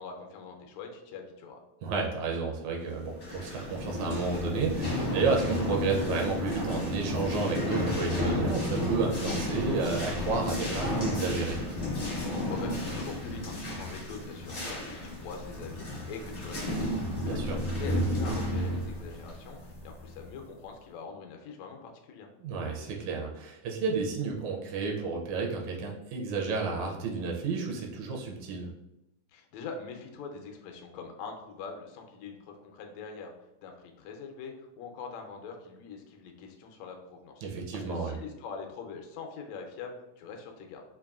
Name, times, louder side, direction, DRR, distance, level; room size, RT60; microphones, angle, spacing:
voice 1, 0.0-1.6 12.2-16.9 17.3-22.3 29.3-33.3 33.6-37.4 37.7-40.8, left 5 dB, 80° left, 3 dB, 1.7 m, -43 dB
voice 2, 1.8-11.6 17.2-17.6 22.4-28.7 37.4-38.2, right 4 dB, 80° right, 0 dB, 1.9 m, -31 dB
sound 1, 3.0-20.4, left 1 dB, 55° left, 0.6 m, -32 dB
5.2 x 2.6 x 2.4 m, 0.90 s
omnidirectional pair, 3.4 m